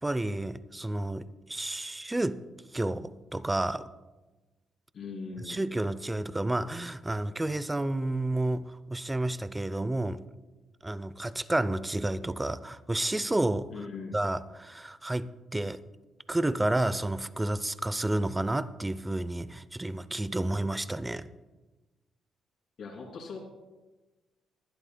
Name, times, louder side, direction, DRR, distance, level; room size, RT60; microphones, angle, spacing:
voice 1, 0.0-2.4 2.7-3.8 5.5-10.2 10.8-13.7 14.1-15.8 16.3-21.3, right 1 dB, 15° right, 16 dB, 0.5 m, -30 dB
voice 2, 4.9-5.7 13.7-14.2 22.8-23.4, left 4 dB, 60° left, 1 dB, 2.9 m, -40 dB
20.0 x 11.5 x 2.2 m, 1.2 s
cardioid pair, 90°, 0 cm